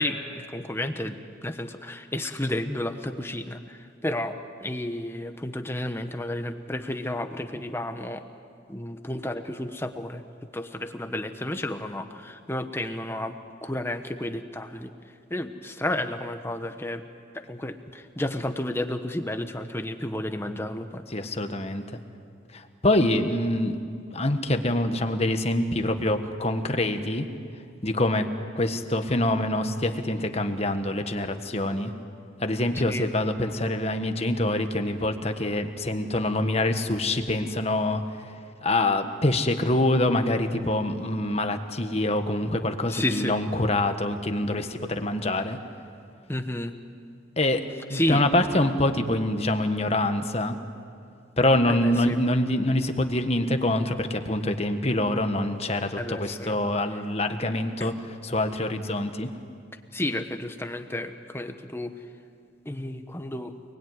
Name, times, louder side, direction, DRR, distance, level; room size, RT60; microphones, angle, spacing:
voice 1, 0.0-8.2 8.7-10.3 10.5-14.9 15.3-17.0 17.3-21.0 32.9-33.1 42.9-43.3 46.3-46.7 47.9-48.2 51.7-52.2 56.0-56.6 57.8-57.9 59.9-61.9 62.6-63.5, left 1 dB, 10° left, 7 dB, 1.2 m, -31 dB
voice 2, 21.1-21.8 22.5-23.8 24.1-27.3 27.8-28.3 28.5-31.9 32.4-38.0 38.6-45.6 47.4-47.6 47.9-50.6 51.4-57.9 58.2-59.3, left 1 dB, 30° left, 7 dB, 1.5 m, -25 dB
29.0 x 20.5 x 9.6 m, 2.4 s
head